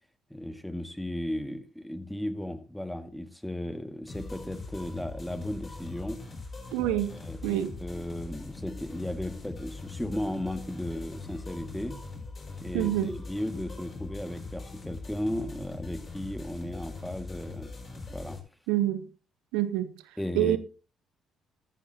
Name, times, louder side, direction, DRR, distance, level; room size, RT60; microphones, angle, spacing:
voice 1, 0.3-6.2 6.8-12.0 12.6-17.7 18.1-18.4 20.2-20.6, left 1 dB, 5° left, 2.0 m, -35 dB
sound 1, 4.1-18.4, left 3 dB, 35° left, 6.1 m, -41 dB
voice 2, 6.7-7.1 7.4-7.7 12.7-13.1 18.7-19.0 19.5-19.9 20.3-20.6, right 13 dB, 75° right, 0.9 m, -26 dB
14.0 x 12.0 x 2.9 m
hypercardioid pair, 50°, 0 cm